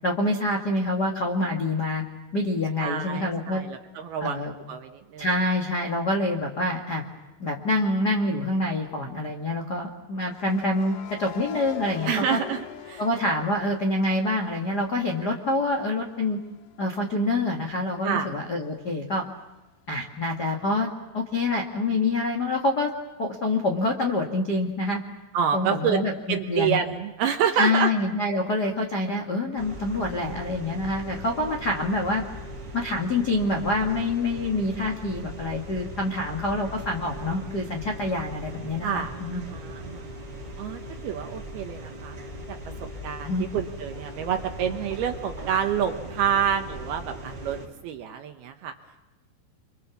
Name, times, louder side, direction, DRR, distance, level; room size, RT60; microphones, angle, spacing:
voice 1, 0.0-2.0 2.3-3.6 4.2-4.5 5.2-7.0 7.4-12.4 13.0-16.4 16.8-19.2 19.9-22.9 23.2-25.0 25.5-26.8 27.5-32.2 32.7-39.4 43.2-43.4, left 2 dB, 85° left, 1 dB, 0.9 m, -26 dB
voice 2, 2.8-4.4 4.7-5.3 12.1-13.0 18.0-18.3 25.3-26.0 26.3-27.9 38.8-40.1 40.6-42.2 42.5-42.6 43.0-48.7, right 8 dB, 70° right, 5 dB, 2.5 m, -28 dB
sound 1, 7.0-7.2 10.3-14.2 14.6-18.1, left 10 dB, 65° left, 3.0 m, -43 dB
sound 2, 29.6-47.7, equal, 25° right, 2.8 m, -39 dB
30.0 x 24.5 x 7.2 m, 1.0 s
omnidirectional pair, 5.7 m